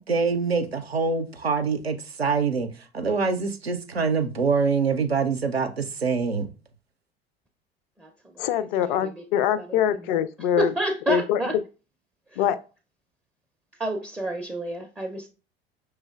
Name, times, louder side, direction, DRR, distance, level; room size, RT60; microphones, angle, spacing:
voice 1, 0.1-2.7 2.9-6.5, right 5 dB, 90° right, 0.5 m, -25 dB
voice 2, 8.4-10.7 11.1-11.4 12.4-12.6, left 10 dB, 55° left, 0.4 m, -24 dB
voice 3, 10.6-11.5 13.8-15.3, right 1 dB, 5° right, 0.4 m, -29 dB
5.3 x 3.3 x 2.3 m
figure-of-eight pair, 70°, 30 cm